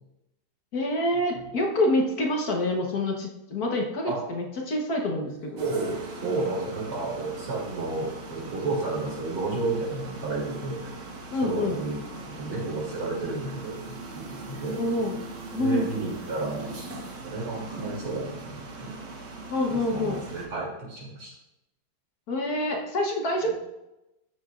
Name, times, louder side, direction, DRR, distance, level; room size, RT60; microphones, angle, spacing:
voice 1, 0.7-5.6 11.3-11.8 14.7-15.2 15.5-15.9 19.5-20.2 22.3-23.5, left 1 dB, 50° left, 0 dB, 1.5 m, -27 dB
sound 1, 5.6-20.5, right 2 dB, 60° right, 1.8 m, -40 dB
voice 2, 5.6-10.8 11.4-14.8 15.6-16.9 17.2-18.9 19.7-21.3 23.4-23.5, right 3 dB, 85° right, -5 dB, 3.8 m, -32 dB
12.0 x 7.9 x 2.5 m, 0.93 s
omnidirectional pair, 2.2 m